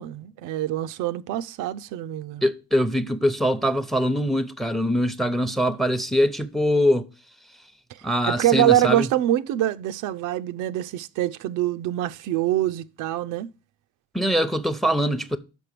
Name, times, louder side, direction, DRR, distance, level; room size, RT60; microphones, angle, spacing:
voice 1, 0.0-2.5 7.9-13.5, right 13 dB, 90° right, 0.5 m, -25 dB
voice 2, 2.4-7.1 8.0-9.1 14.1-15.4, equal, ahead, 0.7 m, -23 dB
6.1 x 5.3 x 6.6 m
cardioid pair, 90°, 30 cm